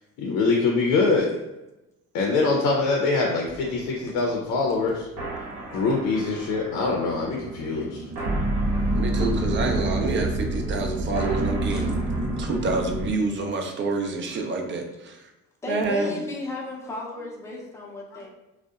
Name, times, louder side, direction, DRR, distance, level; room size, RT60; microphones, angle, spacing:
voice 1, 0.2-1.3 2.1-5.1 5.7-8.0 18.1-18.2, left 3 dB, 70° left, 0 dB, 0.5 m, -24 dB
sound 1, 3.5-13.2, right 1 dB, 75° right, 0.9 m, -28 dB
voice 2, 8.9-11.9 12.4-15.2 15.7-16.1, right 3 dB, 35° right, 3 dB, 0.5 m, -27 dB
voice 3, 15.6-18.3, left 2 dB, 10° left, -3 dB, 0.6 m, -35 dB
2.5 x 2.0 x 2.4 m, 0.97 s
supercardioid pair, 75°, 32 cm